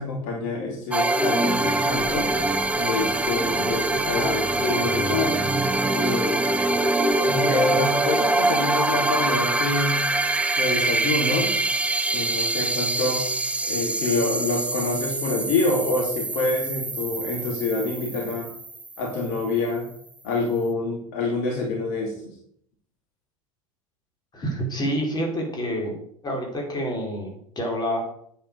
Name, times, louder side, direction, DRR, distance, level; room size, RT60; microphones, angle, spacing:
voice 1, 0.0-2.3 2.8-5.4 5.9-6.4 7.2-10.0 10.6-11.6 12.1-13.2 13.6-18.5 19.0-19.9 20.2-22.3, left 2 dB, 50° left, 0 dB, 2.7 m, -26 dB
sound 1, 0.9-19.4, right 2 dB, 5° right, 0.8 m, -24 dB
voice 2, 24.3-25.9 26.2-28.0, equal, 25° left, 1 dB, 4.3 m, -28 dB
9.4 x 8.1 x 6.7 m, 0.66 s
figure-of-eight pair, 80°, 18 cm